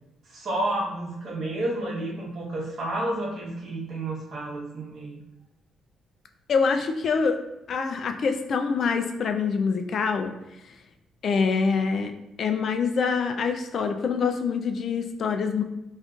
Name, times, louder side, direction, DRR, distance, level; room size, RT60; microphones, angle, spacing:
voice 1, 0.3-5.2, right 1 dB, 55° right, -3 dB, 1.0 m, -30 dB
voice 2, 6.5-7.4 7.7-10.3 11.2-12.1 12.4-15.6, left 5 dB, 55° left, 6 dB, 0.4 m, -25 dB
3.5 x 2.5 x 2.4 m, 0.89 s
cardioid pair, 90°, 0 cm